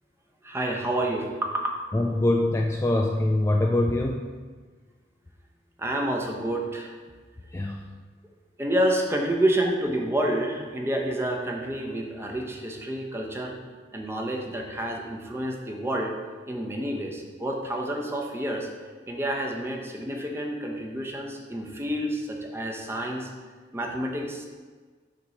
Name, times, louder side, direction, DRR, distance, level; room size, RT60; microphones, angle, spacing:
voice 1, 0.4-1.8 5.8-7.0 8.6-13.6 13.9-16.1 16.5-18.7 19.1-23.3 23.7-24.5, right 1 dB, 15° right, 0 dB, 0.7 m, -29 dB
voice 2, 1.9-4.3 7.5-7.8, left 1 dB, 15° left, 1 dB, 0.3 m, -24 dB
6.6 x 3.0 x 5.4 m, 1.4 s
head